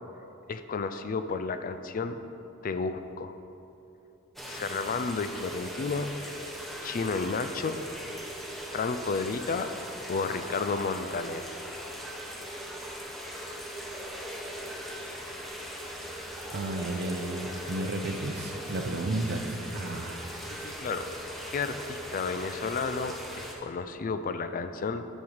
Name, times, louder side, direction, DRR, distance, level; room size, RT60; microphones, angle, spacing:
voice 1, 0.5-2.2 2.6-3.4 4.5-6.1 6.8-7.8 8.7-9.7 10.1-11.6 20.5-21.1 21.5-25.1, left 4 dB, 40° left, 10 dB, 0.4 m, -32 dB
sound 1, 4.4-23.5, equal, ahead, 1.0 m, -39 dB
voice 2, 16.5-20.3, right 2 dB, 55° right, 5 dB, 0.7 m, -33 dB
7.5 x 5.5 x 6.4 m, 2.8 s
head